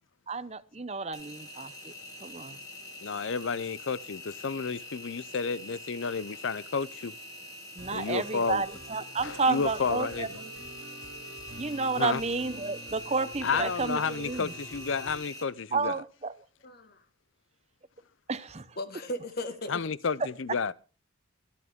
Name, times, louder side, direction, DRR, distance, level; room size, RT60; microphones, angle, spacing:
voice 1, 0.3-1.9 2.2-2.6 7.8-10.5 11.6-14.5 15.7-16.3 18.3-18.8, right 4 dB, 30° right, 0.7 m, -31 dB
Engine, 1.1-15.4, left 1 dB, 15° left, 2.9 m, -45 dB
voice 2, 3.0-7.2 7.9-8.6 9.2-10.3 12.0-12.2 13.4-15.9 19.7-20.7, left 5 dB, 65° left, 0.6 m, -31 dB
sound 1, 7.8-15.2, right 1 dB, 70° right, 6.8 m, -47 dB
voice 3, 16.6-17.0 18.8-19.7, left 1 dB, 45° left, 1.5 m, -36 dB
25.0 x 8.6 x 3.7 m
head